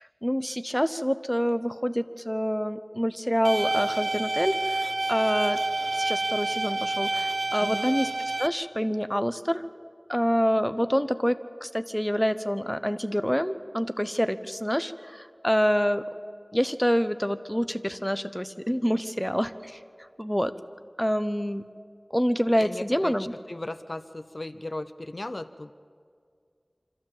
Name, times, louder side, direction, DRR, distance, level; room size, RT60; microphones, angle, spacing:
voice 1, 0.2-5.6 5.9-8.1 8.4-9.6 10.1-16.0 16.5-19.8 20.2-20.5 21.0-21.6 22.1-23.3, equal, 10° left, 11 dB, 0.8 m, -27 dB
sound 1, 3.4-8.5, right 2 dB, 65° right, 0.8 m, -28 dB
voice 2, 22.6-25.7, left 2 dB, 55° left, 12 dB, 0.5 m, -36 dB
25.5 x 14.0 x 7.4 m, 2.2 s
wide cardioid pair, 45°, 0 cm